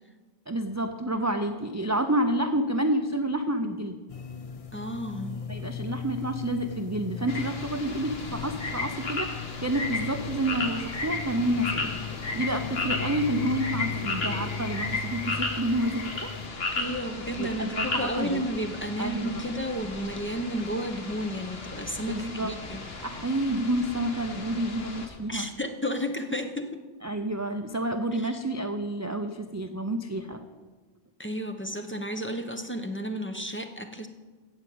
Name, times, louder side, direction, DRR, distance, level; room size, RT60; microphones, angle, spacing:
voice 1, 0.5-4.0 5.5-11.9 12.3-16.3 17.4-18.4 19.0-19.4 22.1-22.5 23.0-25.5 27.0-30.4, right 1 dB, 25° right, 6 dB, 0.4 m, -29 dB
sound 1, 4.1-16.5, left 6 dB, 45° left, 0.5 m, -38 dB
voice 2, 4.7-5.3 16.7-22.8 25.3-26.8 28.1-28.4 31.2-34.1, equal, 10° left, 5 dB, 0.8 m, -32 dB
sound 2, 7.3-25.1, left 3 dB, 60° left, 1.6 m, -35 dB
15.5 x 5.1 x 8.5 m, 1.3 s
omnidirectional pair, 1.2 m